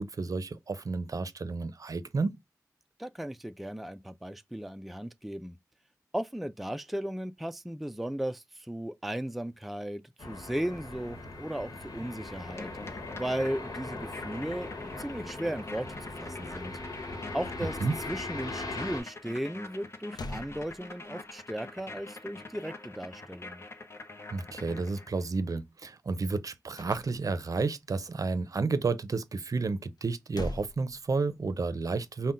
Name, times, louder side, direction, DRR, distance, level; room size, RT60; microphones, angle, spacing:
voice 1, 0.0-2.4 17.6-18.0 24.3-32.3, right 4 dB, 55° right, 0.5 m, -31 dB
voice 2, 3.0-5.6 6.1-16.8 17.3-17.8 18.1-23.6, right 1 dB, ahead, 0.3 m, -36 dB
sound 1, 10.2-19.0, left 2 dB, 70° left, 1.1 m, -40 dB
sound 2, 12.5-25.3, left 3 dB, 40° left, 0.8 m, -45 dB
sound 3, 19.7-19.8 20.1-21.3 26.7-27.6 30.0-31.6, left 1 dB, 85° left, 0.6 m, -42 dB
5.5 x 2.1 x 2.5 m
wide cardioid pair, 95°, 7 cm